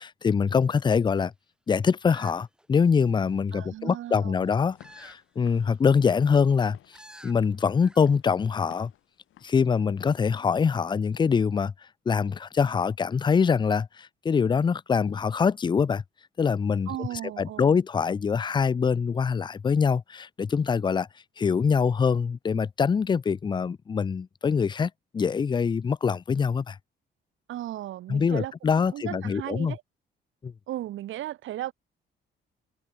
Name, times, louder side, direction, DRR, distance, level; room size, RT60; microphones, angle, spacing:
voice 1, 0.0-1.3 1.7-6.8 7.2-8.9 9.4-11.7 12.1-16.0 16.4-21.1 21.4-26.8 28.1-29.7 30.4-30.5, left 6 dB, 25° left, 0.4 m, -24 dB
sound 1, 2.1-3.2 4.8-5.2 5.6-5.7 6.9-7.3 7.8-8.1 8.4-8.5, right 1 dB, 5° right, 2.3 m, -50 dB
voice 2, 3.5-4.3 16.9-17.8 27.5-28.5 28.9-29.8 30.7-31.7, right 13 dB, 80° right, 2.6 m, -36 dB
Walk footsteps / Siren, 4.6-10.2, left 13 dB, 85° left, 7.8 m, -57 dB
cardioid pair, 90°, 20 cm